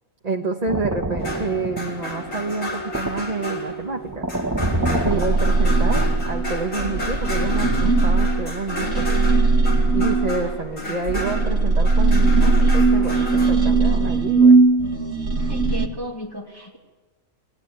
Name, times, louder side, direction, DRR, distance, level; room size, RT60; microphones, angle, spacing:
voice 1, 0.2-4.2 4.8-9.2 9.9-14.6, right 3 dB, 30° right, 1 dB, 1.4 m, -28 dB
sound 1, 0.7-6.5 6.9-8.3 9.1-9.5 9.8-10.0 10.5-10.7 11.1-11.2, right 1 dB, 15° right, 1.0 m, -29 dB
sound 2, 1.2-13.5, equal, 65° left, 4.8 m, -31 dB
sound 3, 4.6-10.7 11.1-15.9, right 3 dB, 65° right, 2.3 m, -19 dB
voice 2, 10.4-11.1 15.3-16.8, equal, 15° left, -2 dB, 2.5 m, -36 dB
29.5 x 19.0 x 8.9 m, 1.3 s
omnidirectional pair, 1.5 m